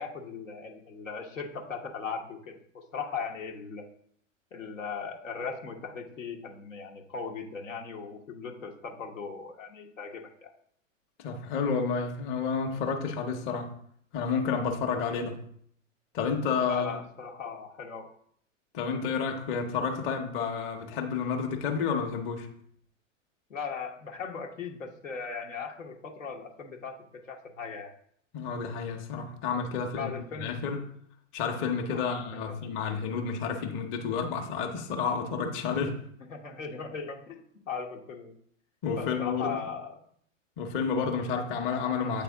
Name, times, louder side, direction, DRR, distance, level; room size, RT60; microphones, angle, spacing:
voice 1, 0.0-3.8 4.5-10.5 16.7-18.1 23.5-27.0 27.2-27.9 30.0-30.6 31.9-32.7 36.3-38.3 39.0-40.0, left 5 dB, 85° left, 1.1 m, -38 dB
voice 2, 11.2-13.7 14.1-15.4 16.1-17.0 18.7-22.5 28.3-30.1 30.4-30.8 31.3-36.0 38.8-39.6 40.6-42.2, left 5 dB, 30° left, 0.9 m, -30 dB
8.4 x 3.4 x 3.5 m
hypercardioid pair, 110°, 39 cm